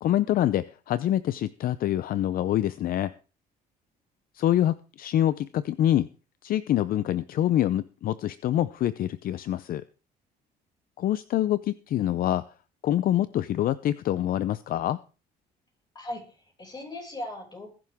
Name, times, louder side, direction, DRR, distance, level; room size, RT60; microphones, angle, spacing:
voice 1, 0.0-3.1 4.3-6.1 6.4-9.8 11.0-12.5 12.8-15.0, left 12 dB, 60° left, 15 dB, 0.6 m, -25 dB
voice 2, 15.9-17.7, left 1 dB, 25° left, 1 dB, 6.2 m, -38 dB
20.5 x 11.0 x 3.6 m, 0.35 s
cardioid pair, 110°, 17 cm